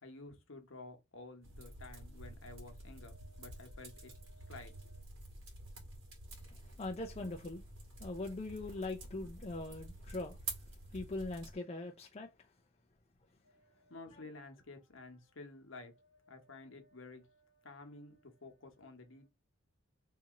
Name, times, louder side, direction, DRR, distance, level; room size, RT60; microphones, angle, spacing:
voice 1, 0.0-5.0 13.4-19.3, left 2 dB, 70° left, 1.0 m, -53 dB
sound 1, 1.4-11.5, right 2 dB, 70° right, 1.5 m, -49 dB
voice 2, 6.5-7.7 8.0-10.4 10.9-12.5, left 2 dB, 30° left, 0.5 m, -41 dB
2.9 x 2.8 x 3.6 m
head